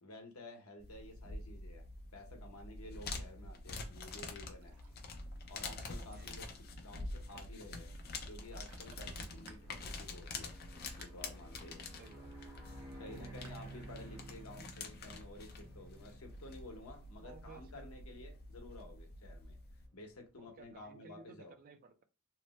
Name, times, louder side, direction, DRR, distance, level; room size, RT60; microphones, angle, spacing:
voice 1, 0.0-1.9 2.1-4.7 5.5-7.9 8.3-10.5 11.0-11.8 13.0-19.6 19.9-21.5, left 2 dB, 80° left, 0.8 m, -52 dB
sound 1, 0.8-19.9, left 3 dB, 45° left, 0.5 m, -47 dB
sound 2, 1.5-20.8, right 2 dB, 15° right, 1.0 m, -57 dB
Ocean, 3.5-13.6, right 4 dB, 80° right, 0.6 m, -66 dB
voice 2, 6.1-6.5 12.0-12.6 12.9-13.3 17.2-18.0 20.4-22.0, right 4 dB, 40° right, 0.4 m, -57 dB
2.9 x 2.1 x 2.9 m
head